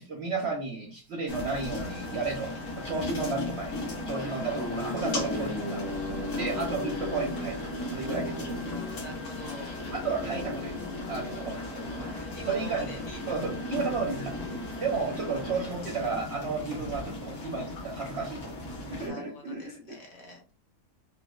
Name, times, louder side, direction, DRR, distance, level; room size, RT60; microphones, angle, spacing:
voice 1, 0.0-3.7 4.1-5.9 6.3-8.4 9.9-10.7 11.1-11.6 12.5-12.9 13.3-14.4 14.8-18.5 18.8-19.7, right 4 dB, 60° right, 0 dB, 0.7 m, -33 dB
sound 1, 1.3-19.1, left 2 dB, 85° left, 1.5 m, -37 dB
voice 2, 2.1-3.1 3.9-4.7 6.3-6.6 8.0-10.1 12.1-13.4 14.7-15.0 19.0-20.5, left 1 dB, 65° left, 1 dB, 1.4 m, -47 dB
sound 2, 4.2-16.3, left 1 dB, 20° left, 0.8 m, -38 dB
4.2 x 2.1 x 2.2 m, 0.35 s
omnidirectional pair, 1.6 m